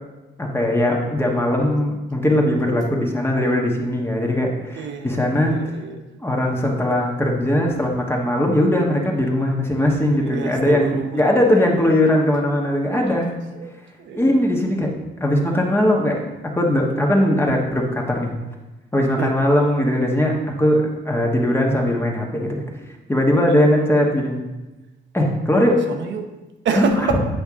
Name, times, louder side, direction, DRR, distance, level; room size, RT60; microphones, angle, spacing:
voice 1, 0.4-5.5 6.2-13.4 14.1-14.9 15.2-16.2 16.6-18.3 18.9-22.6 23.1-24.4 25.1-25.8 26.7-26.8, left 1 dB, 10° left, -1 dB, 1.3 m, -19 dB
voice 2, 4.8-6.0 10.2-11.3 13.0-13.3 13.6-13.7 14.0-14.2 14.6-14.7 19.2-19.3 23.5-23.6 25.9-26.2 26.6-27.2, right 6 dB, 70° right, 5 dB, 0.9 m, -27 dB
8.1 x 5.4 x 3.6 m, 1.1 s
cardioid pair, 90°, 20 cm